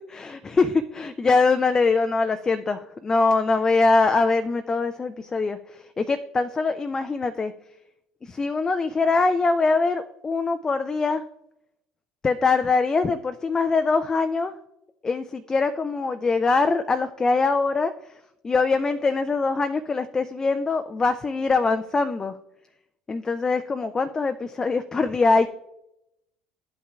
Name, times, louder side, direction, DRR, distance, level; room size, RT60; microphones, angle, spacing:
voice 1, 0.1-7.5 8.2-11.2 12.2-14.6 15.0-22.4 23.1-25.5, left 3 dB, 25° left, 9 dB, 0.4 m, -23 dB
11.5 x 5.6 x 2.3 m, 0.83 s
figure-of-eight pair, 60°, 3 cm